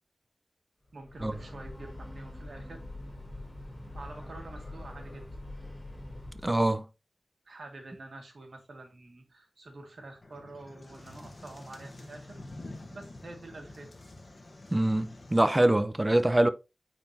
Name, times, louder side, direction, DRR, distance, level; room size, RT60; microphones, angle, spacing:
Breathing / Train, 0.9-6.6, left 1 dB, 20° left, 3.3 m, -44 dB
voice 1, 0.9-2.8 3.9-5.3 7.5-12.4 12.9-13.9, right 2 dB, 75° right, 1.8 m, -47 dB
voice 2, 6.4-6.8 14.7-16.5, right 1 dB, 25° right, 0.7 m, -24 dB
sound 1, 10.2-15.5, left 2 dB, 45° left, 1.2 m, -48 dB
9.1 x 4.3 x 2.8 m
wide cardioid pair, 65°, 0 cm